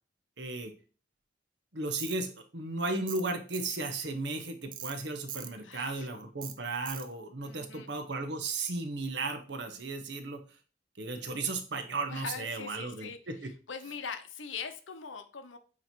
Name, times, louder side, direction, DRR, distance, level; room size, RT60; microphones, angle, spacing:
voice 1, 0.4-0.7 1.7-10.4 11.0-13.5, right 3 dB, 65° right, 6 dB, 1.0 m, -35 dB
Tools, 2.0-2.2 3.1-3.3 3.5-3.8 4.7-5.0 5.3-5.5 6.4-6.6 6.9-7.1, right 10 dB, 45° right, 0.6 m, -41 dB
voice 2, 5.6-6.1 7.4-7.9 12.1-15.6, left 5 dB, 85° left, 8 dB, 0.8 m, -42 dB
8.5 x 3.1 x 4.4 m, 0.39 s
head